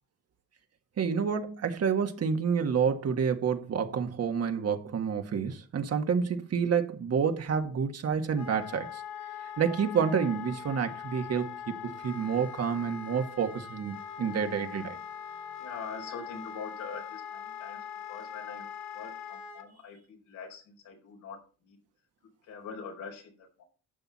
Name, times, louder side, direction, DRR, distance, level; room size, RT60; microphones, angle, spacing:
voice 1, 1.0-9.0 9.6-15.0, right 6 dB, 55° right, 1.8 m, -29 dB
Wind instrument woodwind instrument, 8.3-19.7, left 8 dB, 65° left, 1.7 m, -42 dB
voice 2, 15.6-18.7 18.9-21.8 22.4-23.6, left 5 dB, 85° left, 4.9 m, -44 dB
12.0 x 8.1 x 4.3 m
cardioid pair, 90°, 30 cm